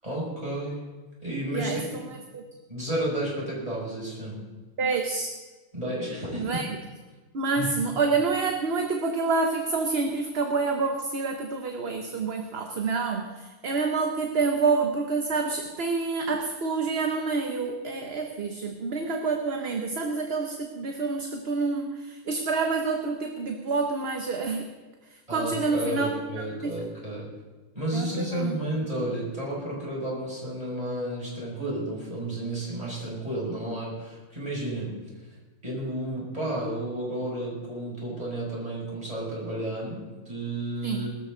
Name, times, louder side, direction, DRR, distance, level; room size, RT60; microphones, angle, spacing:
voice 1, 0.0-0.8 1.2-2.1 2.7-4.4 5.7-6.6 7.6-7.7 25.3-27.3 27.7-35.0 35.6-41.1, right 1 dB, 25° right, -5 dB, 6.0 m, -32 dB
voice 2, 1.5-2.4 4.8-5.3 6.4-6.7 7.3-24.7 25.3-26.1 26.6-26.7 27.9-28.6 40.8-41.1, right 4 dB, 45° right, 4 dB, 1.2 m, -28 dB
21.5 x 13.0 x 3.9 m, 1.3 s
omnidirectional pair, 1.5 m